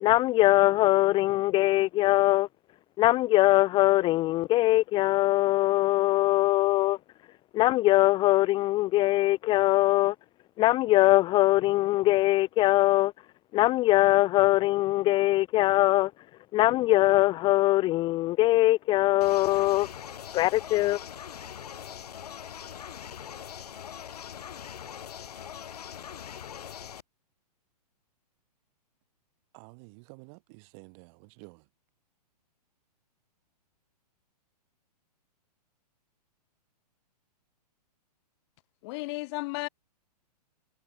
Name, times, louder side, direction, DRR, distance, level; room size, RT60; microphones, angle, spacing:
voice 1, 0.0-2.5 3.0-7.0 7.5-10.1 10.6-13.1 13.5-16.1 16.5-19.9 20.3-21.0, left 17 dB, 25° left, 0.6 m, -22 dB
sound 1, 19.2-27.0, left 9 dB, 70° left, 3.5 m, -42 dB
voice 2, 29.5-31.7, right 35 dB, 40° right, 6.9 m, -51 dB
voice 3, 38.8-39.7, left 25 dB, 40° left, 1.6 m, -33 dB
hypercardioid pair, 120°, 21 cm